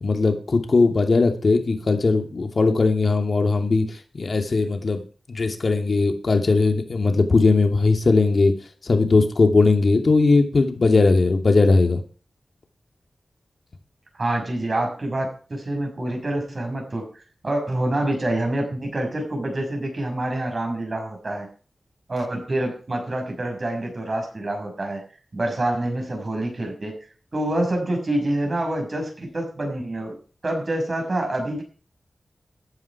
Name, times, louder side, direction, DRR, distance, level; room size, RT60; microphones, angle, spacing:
voice 1, 0.0-3.9 4.1-5.0 5.3-8.5 8.8-12.0, left 3 dB, 60° left, 4 dB, 2.6 m, -19 dB
voice 2, 14.2-17.1 17.4-21.5 22.1-25.0 25.3-27.0 27.3-30.2 30.4-31.6, right 1 dB, 45° right, 3 dB, 6.1 m, -26 dB
14.5 x 9.8 x 4.8 m, 0.39 s
wide cardioid pair, 80°, 0 cm